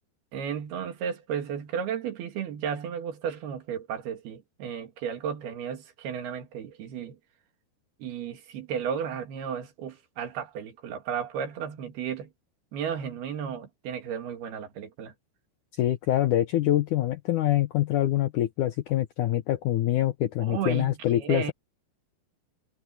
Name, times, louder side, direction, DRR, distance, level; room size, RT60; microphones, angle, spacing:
voice 1, 0.3-7.2 8.0-12.3 12.7-15.1 20.4-21.5, right 8 dB, 75° right, 4.1 m, -34 dB
voice 2, 15.8-21.5, left 13 dB, 75° left, 1.9 m, -25 dB
omnidirectional pair, 4.6 m